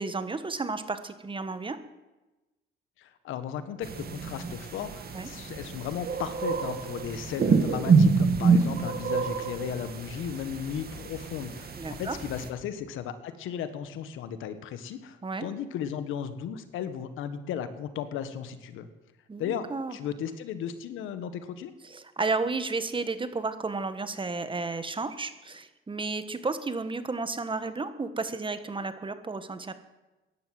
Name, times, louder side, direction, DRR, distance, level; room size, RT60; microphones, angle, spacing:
voice 1, 0.0-1.8 5.1-5.3 8.4-8.5 11.8-12.2 15.2-15.5 19.3-20.0 21.8-29.7, right 3 dB, 25° right, 11 dB, 1.5 m, -32 dB
voice 2, 3.0-18.9 19.4-19.6 19.9-21.7, left 8 dB, 90° left, 11 dB, 1.5 m, -35 dB
sound 1, 3.8-12.5, right 5 dB, 50° right, 2.2 m, -27 dB
16.0 x 11.0 x 7.8 m, 1.1 s
cardioid pair, 90°, 20 cm